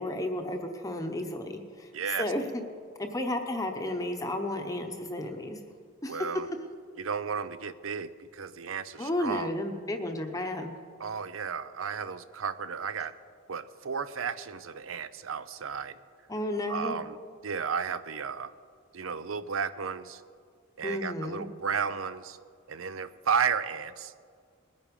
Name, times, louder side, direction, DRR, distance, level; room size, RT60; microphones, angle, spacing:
voice 1, 0.0-1.9 2.2-2.4 3.0-5.6 6.0-6.2 9.0-10.7 16.3-17.0 20.8-21.5, left 1 dB, 15° left, 4 dB, 0.9 m, -32 dB
voice 2, 1.9-2.3 6.1-6.5 7.0-9.5 11.0-13.1 13.5-16.0 16.7-17.2 17.4-18.5 18.9-20.2 20.8-22.4 22.7-24.1, right 6 dB, 80° right, 14 dB, 0.6 m, -33 dB
20.5 x 9.4 x 5.3 m, 2.1 s
head